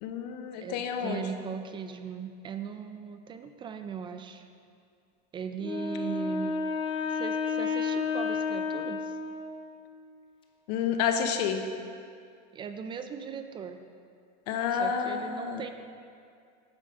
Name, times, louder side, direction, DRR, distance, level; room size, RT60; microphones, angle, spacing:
voice 1, 0.0-1.2 10.7-11.6 14.5-15.6, left 7 dB, 75° left, 6 dB, 0.8 m, -29 dB
voice 2, 0.6-4.5 5.3-6.5 7.1-9.2 12.5-13.8 14.7-15.7, right 7 dB, 25° right, 8 dB, 0.4 m, -38 dB
Wind instrument woodwind instrument, 5.6-9.8, left 5 dB, 25° left, 0.7 m, -31 dB
9.5 x 7.5 x 3.7 m, 2.3 s
supercardioid pair, 140°, 21 cm